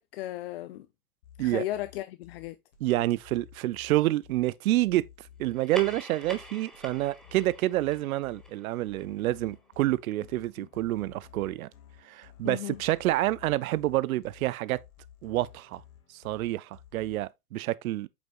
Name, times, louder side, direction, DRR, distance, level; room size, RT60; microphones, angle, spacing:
voice 1, 0.1-0.9 1.4-2.6 10.6-10.7 12.4-12.8, left 14 dB, 45° left, 0.5 m, -35 dB
sound 1, 1.2-17.2, left 10 dB, 65° left, 2.3 m, -54 dB
voice 2, 2.8-5.0 5.4-11.7 12.0-14.8 15.2-15.8 16.2-18.1, right 16 dB, 70° right, 0.6 m, -28 dB
sound 2, 5.5-10.4, equal, ahead, 0.8 m, -46 dB
8.0 x 5.2 x 2.4 m
hypercardioid pair, 125°, 44 cm